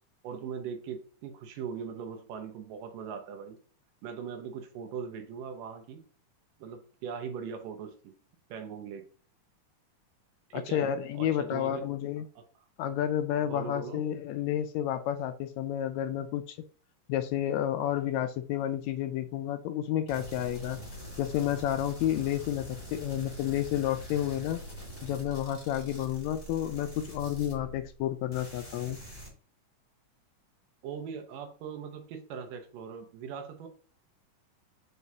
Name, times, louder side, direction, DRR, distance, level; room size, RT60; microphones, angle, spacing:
voice 1, 0.2-3.6 4.0-6.0 6.6-7.9 8.5-9.1 10.5-10.9 11.1-11.9 12.4-12.5 13.4-14.0 30.8-33.7, right 6 dB, 90° right, 6 dB, 2.7 m, -40 dB
voice 2, 10.5-12.3 12.8-16.6 17.1-20.8 21.2-24.6 25.0-29.0, left 11 dB, 85° left, 9 dB, 1.6 m, -31 dB
sound 1, 20.1-28.0 28.3-29.3, equal, 15° left, 1.6 m, -44 dB
8.0 x 4.8 x 2.8 m, 0.42 s
omnidirectional pair, 3.7 m